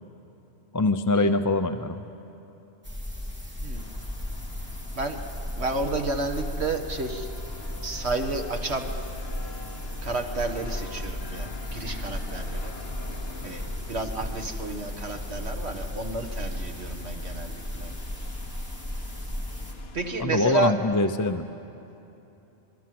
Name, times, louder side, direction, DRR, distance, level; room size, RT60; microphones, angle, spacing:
voice 1, 0.7-2.1 20.2-21.5, left 2 dB, 20° left, 7 dB, 0.5 m, -24 dB
sound 1, 2.8-19.7, left 1 dB, 10° right, 3.3 m, -35 dB
sound 2, 3.8-20.2, left 3 dB, 55° left, 1.3 m, -45 dB
voice 2, 5.5-7.3 7.8-8.9 10.0-12.7 13.4-13.6 13.9-17.9 19.9-20.7, right 2 dB, 55° right, 4 dB, 1.8 m, -31 dB
26.5 x 21.0 x 7.8 m, 3.0 s
omnidirectional pair, 1.3 m